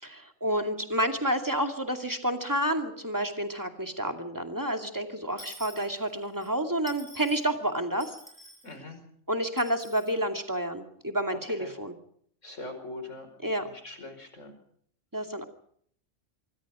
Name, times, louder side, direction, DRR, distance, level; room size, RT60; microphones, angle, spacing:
voice 1, 0.0-8.1 9.3-12.0 13.4-13.7 15.1-15.4, right 1 dB, 15° right, 5 dB, 2.5 m, -29 dB
Dishes pots and pans / Coin (dropping), 5.4-6.5 6.9-7.5 8.0-8.7 9.6-10.1, equal, 30° left, 7.1 m, -48 dB
voice 2, 8.6-9.0 11.6-11.8 12.4-13.3 13.8-14.5, left 2 dB, 75° left, 7 dB, 5.4 m, -41 dB
25.5 x 24.0 x 5.0 m, 0.64 s
omnidirectional pair, 1.3 m